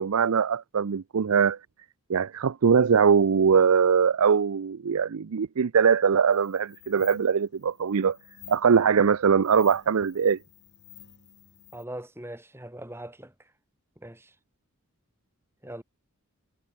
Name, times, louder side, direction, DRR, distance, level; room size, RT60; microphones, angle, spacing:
voice 1, 0.0-1.6 2.1-8.2 8.5-10.4, right 6 dB, 75° right, 0.5 m, -22 dB
sound 1, 6.3-11.8, left 10 dB, 50° left, 6.9 m, -52 dB
voice 2, 11.7-13.3 14.0-14.3 15.6-15.8, right 1 dB, 10° right, 2.7 m, -40 dB
head